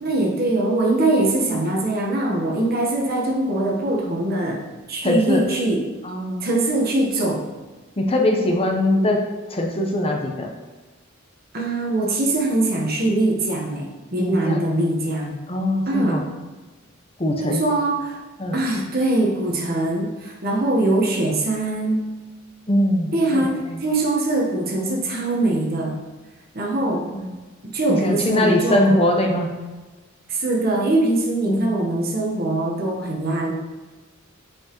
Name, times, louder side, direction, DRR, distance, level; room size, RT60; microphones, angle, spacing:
voice 1, 0.0-4.6 4.9-5.8 6.4-7.4 11.5-15.4 15.9-16.2 17.4-18.2 18.5-22.1 23.1-25.9 26.5-27.1 27.6-29.1 30.3-33.5, right 2 dB, 50° right, -1 dB, 1.1 m, -22 dB
voice 2, 5.0-5.4 6.0-6.5 8.0-9.2 9.5-10.5 14.2-14.7 15.5-16.2 17.2-17.6 18.4-18.6 22.7-23.8 27.1-27.3 27.9-29.5 31.5-31.8, left 1 dB, 30° left, 2 dB, 0.8 m, -22 dB
7.3 x 5.1 x 3.0 m, 1.3 s
head